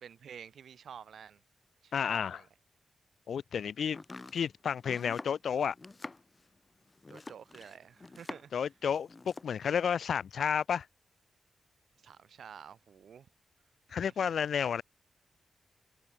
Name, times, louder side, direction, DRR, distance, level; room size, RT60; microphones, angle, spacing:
voice 1, 0.0-1.4 1.8-2.5 7.1-8.5 12.0-13.3 14.0-14.3, right 8 dB, 75° right, 2.5 m, -50 dB
voice 2, 1.9-2.4 3.3-4.0 4.3-5.7 8.5-10.9 13.9-14.8, left 7 dB, 70° left, 0.6 m, -31 dB
Domestic sounds home sounds, 3.9-8.7 8.9-9.6, left 3 dB, 25° left, 1.9 m, -47 dB
wide cardioid pair, 155°, 0 cm